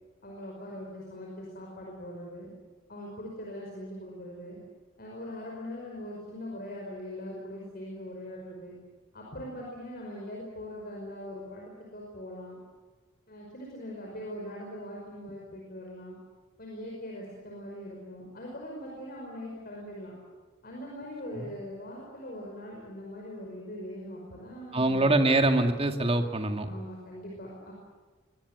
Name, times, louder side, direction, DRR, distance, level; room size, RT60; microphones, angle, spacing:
voice 1, 0.2-2.5 2.9-4.6 5.0-8.8 9.1-12.6 13.3-16.2 16.6-20.1 20.6-25.1 26.6-27.7, left 1 dB, 50° left, -2 dB, 5.4 m, -41 dB
voice 2, 24.7-26.7, right 2 dB, 30° right, 6 dB, 2.0 m, -24 dB
23.5 x 19.5 x 9.6 m, 1.3 s
head